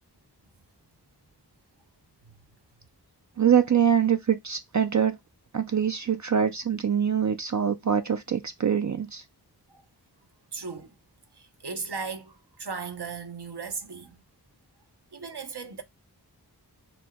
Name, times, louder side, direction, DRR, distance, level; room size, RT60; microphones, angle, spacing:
voice 1, 3.4-5.2 5.5-9.2, right 8 dB, 50° right, 0.4 m, -24 dB
voice 2, 10.5-10.9 11.3-14.2 15.1-15.8, right 5 dB, 75° right, 0.8 m, -37 dB
4.3 x 2.2 x 4.1 m
wide cardioid pair, 40°, 40 cm